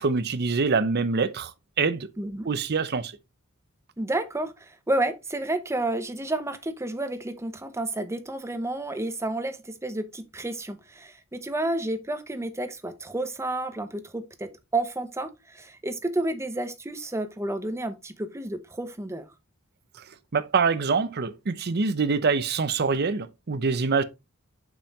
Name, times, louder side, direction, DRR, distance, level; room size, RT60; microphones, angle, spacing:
voice 1, 0.0-1.5 1.8-2.1 2.5-3.1 20.3-24.0, right 4 dB, 50° right, 0.6 m, -25 dB
voice 2, 2.2-2.5 4.0-19.3, right 2 dB, 15° right, 0.8 m, -31 dB
7.0 x 5.6 x 2.9 m
head